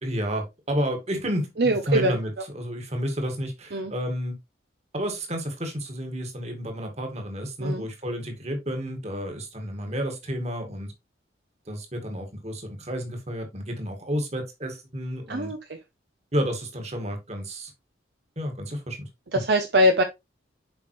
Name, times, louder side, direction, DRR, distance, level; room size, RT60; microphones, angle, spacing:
voice 1, 0.0-4.4 4.9-10.9 11.7-15.5 16.3-17.7 18.4-19.1, equal, 35° right, 1.9 m, -31 dB
voice 2, 1.6-2.2 3.7-3.9 7.6-7.8 15.3-15.6 19.3-20.0, equal, 55° right, 0.7 m, -22 dB
7.2 x 5.2 x 3.1 m
head